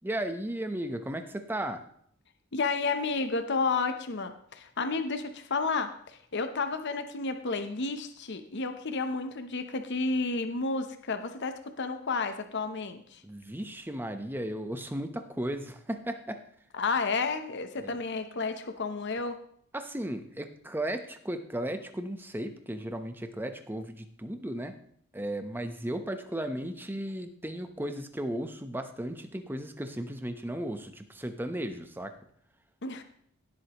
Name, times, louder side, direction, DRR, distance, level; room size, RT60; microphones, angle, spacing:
voice 1, 0.0-1.8 13.2-16.4 17.8-17.9 19.7-24.7 25.1-32.1, right 1 dB, 10° right, 7 dB, 0.9 m, -35 dB
voice 2, 2.5-13.2 16.7-19.4 32.8-33.0, left 4 dB, 55° left, 8 dB, 0.8 m, -31 dB
17.5 x 8.0 x 3.0 m, 0.66 s
head